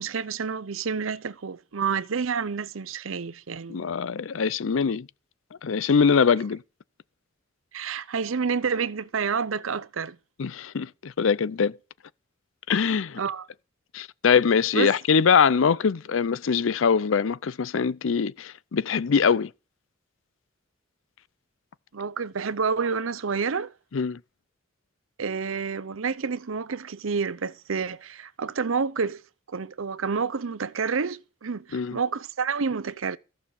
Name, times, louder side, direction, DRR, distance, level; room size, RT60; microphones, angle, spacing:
voice 1, 0.0-3.9 7.7-10.2 12.9-13.5 14.7-14.9 21.9-23.7 25.2-29.2 29.5-33.2, right 5 dB, 85° right, 0.7 m, -29 dB
voice 2, 3.7-5.1 5.6-6.6 10.4-11.8 12.7-13.2 13.9-19.5 23.9-24.2 31.7-32.0, left 6 dB, 75° left, 0.5 m, -23 dB
14.5 x 6.4 x 7.0 m
head